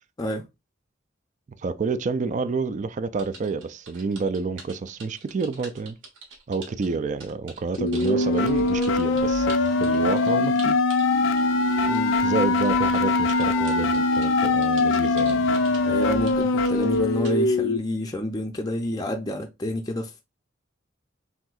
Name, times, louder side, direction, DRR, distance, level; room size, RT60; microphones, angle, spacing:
voice 1, 1.6-6.0 6.5-9.5 9.8-10.8 11.2-11.3 12.2-15.5, right 4 dB, 40° right, 0.4 m, -29 dB
sound 1, 3.1-12.1 12.4-17.4, right 4 dB, 90° right, 1.5 m, -44 dB
sound 2, 7.8-17.8, left 3 dB, 80° left, 0.5 m, -22 dB
voice 2, 15.9-20.2, left 1 dB, 20° left, 0.5 m, -29 dB
5.9 x 2.7 x 2.4 m
head